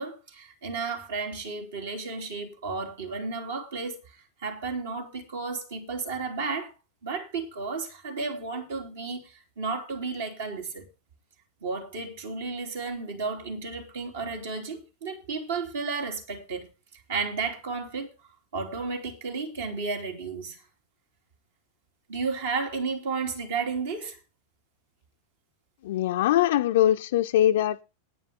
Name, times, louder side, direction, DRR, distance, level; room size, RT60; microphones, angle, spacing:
voice 1, 0.0-4.0 4.4-6.7 7.0-10.9 11.6-16.7 17.1-18.1 18.5-20.6 22.1-24.2, right 4 dB, 60° right, 3.1 m, -33 dB
voice 2, 25.8-27.8, left 12 dB, 55° left, 0.6 m, -22 dB
9.9 x 9.6 x 5.2 m
figure-of-eight pair, 90°, 0 cm